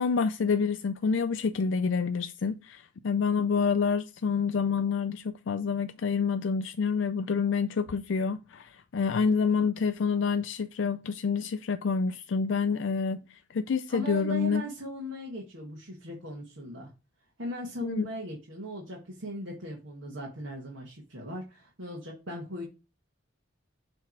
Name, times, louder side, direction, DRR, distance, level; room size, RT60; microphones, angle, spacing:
voice 1, 0.0-13.2 13.5-14.6 17.8-18.1, left 5 dB, 70° left, 0.4 m, -28 dB
voice 2, 13.9-16.9 17.4-22.7, equal, 80° right, 1.7 m, -39 dB
6.7 x 3.5 x 4.6 m
head